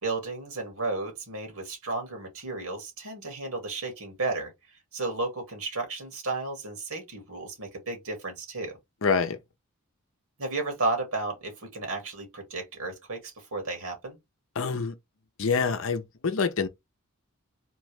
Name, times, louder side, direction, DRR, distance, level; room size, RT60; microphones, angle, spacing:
voice 1, 0.0-4.5 4.9-8.8 10.4-14.2, right 3 dB, 75° right, 2.2 m, -33 dB
voice 2, 9.0-9.4 14.6-14.9 15.4-16.7, left 5 dB, 65° left, 0.6 m, -26 dB
3.8 x 3.0 x 3.3 m
head